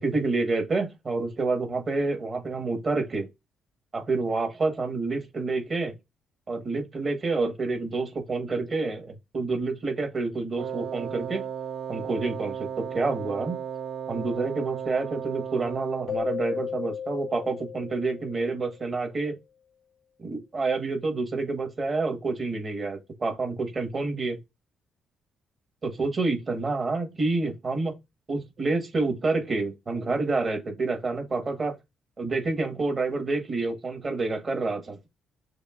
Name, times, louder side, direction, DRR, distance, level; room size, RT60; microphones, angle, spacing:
voice 1, 0.0-3.3 3.9-5.9 6.5-11.5 11.9-13.6 14.1-19.3 20.2-24.4 25.8-27.9 28.3-31.7 32.2-35.0, right 3 dB, 40° right, 1.4 m, -28 dB
Wind instrument woodwind instrument, 10.6-16.3, right 8 dB, 75° right, 0.3 m, -35 dB
Keyboard (musical), 16.1-18.8, left 7 dB, 55° left, 0.4 m, -35 dB
6.4 x 2.6 x 2.5 m
cardioid pair, 90°, 0 cm